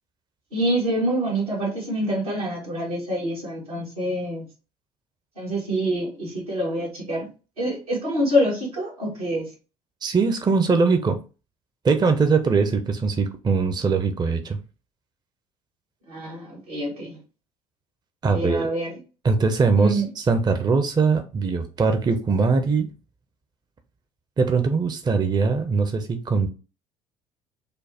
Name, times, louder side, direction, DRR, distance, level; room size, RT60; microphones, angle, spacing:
voice 1, 0.5-4.5 5.4-7.3 7.6-9.5 16.1-17.2 18.3-19.0 19.8-20.1, equal, 85° right, -5 dB, 1.5 m, -26 dB
voice 2, 10.0-11.2 11.8-14.6 18.2-18.7 19.2-22.9 24.4-26.5, right 4 dB, 20° right, 7 dB, 0.6 m, -21 dB
5.0 x 2.1 x 2.8 m, 0.33 s
figure-of-eight pair, 60°, 18 cm